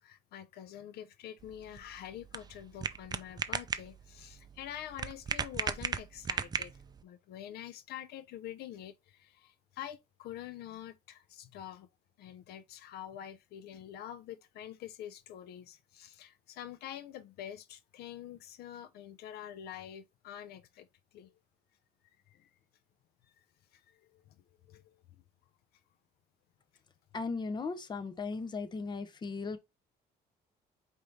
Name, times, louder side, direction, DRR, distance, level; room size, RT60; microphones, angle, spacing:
voice 1, 0.0-11.9 12.2-20.9 21.1-21.3 22.3-22.5 23.4-23.5 23.7-24.4 24.6-25.0, left 11 dB, 70° left, 0.5 m, -46 dB
sound 1, 1.4-7.0, right 6 dB, 25° right, 0.4 m, -37 dB
voice 2, 27.1-29.6, left 4 dB, 25° left, 0.7 m, -37 dB
4.9 x 2.7 x 3.1 m
cardioid pair, 110°, 17 cm